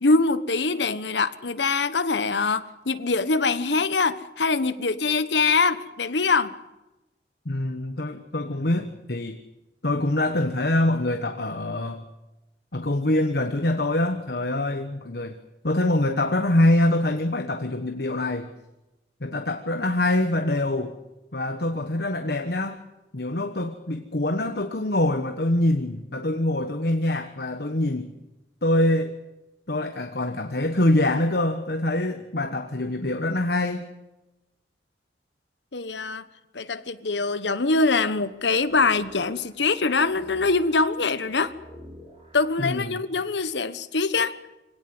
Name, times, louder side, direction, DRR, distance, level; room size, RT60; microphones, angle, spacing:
voice 1, 0.0-6.5 35.7-36.3 36.5-41.5 42.3-44.4, left 3 dB, 80° left, 13 dB, 1.2 m, -23 dB
voice 2, 7.4-9.4 9.8-12.0 12.7-15.4 15.6-18.5 19.2-21.0 21.3-22.8 23.1-28.1 28.6-29.1 29.7-33.8 42.6-43.0, left 1 dB, 60° left, 7 dB, 1.3 m, -24 dB
sound 1, 37.7-42.7, equal, 30° right, 7.4 m, -49 dB
25.0 x 18.0 x 7.8 m, 1.0 s
head